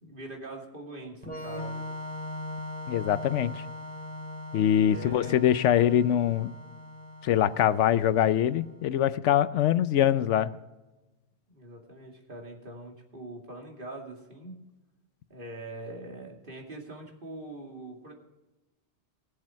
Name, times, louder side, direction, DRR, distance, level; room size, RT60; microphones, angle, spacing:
voice 1, 0.0-1.9 4.8-5.4 11.5-14.6 15.3-18.1, right 2 dB, 45° right, 1 dB, 2.6 m, -43 dB
Organ, 1.2-8.8, left 1 dB, 5° left, 2.7 m, -40 dB
voice 2, 2.9-3.6 4.5-6.5 7.2-10.6, left 10 dB, 85° left, 15 dB, 0.9 m, -23 dB
19.5 x 7.5 x 4.5 m, 1.1 s
omnidirectional pair, 1.2 m